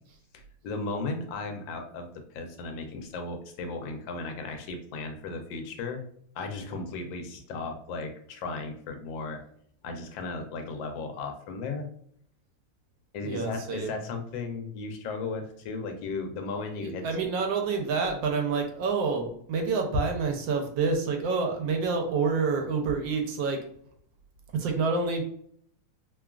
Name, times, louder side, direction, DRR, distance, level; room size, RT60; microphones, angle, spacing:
voice 1, 0.6-2.1 2.3-6.0 6.3-9.4 9.8-11.9 13.1-17.1, left 3 dB, 85° left, 5 dB, 1.3 m, -35 dB
voice 2, 13.2-13.9 16.8-23.6 24.5-25.2, right 4 dB, 85° right, 3 dB, 1.3 m, -28 dB
3.2 x 2.2 x 2.3 m, 0.64 s
omnidirectional pair, 2.0 m